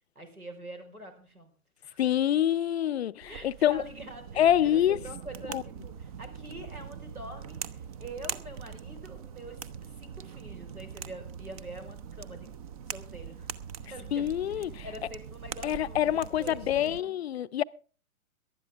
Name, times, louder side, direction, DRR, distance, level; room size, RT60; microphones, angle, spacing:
voice 1, 0.1-1.5 1.8-2.0 3.3-12.5 12.9-13.5 13.9-17.2, right 1 dB, 85° right, 4.6 m, -45 dB
voice 2, 2.0-3.8 4.4-5.0 5.5-5.6 14.1-14.8 15.6-17.6, left 11 dB, 50° left, 0.6 m, -26 dB
sound 1, 3.2-17.0, right 8 dB, 25° right, 0.6 m, -42 dB
18.5 x 12.5 x 3.5 m
figure-of-eight pair, 115°, 43 cm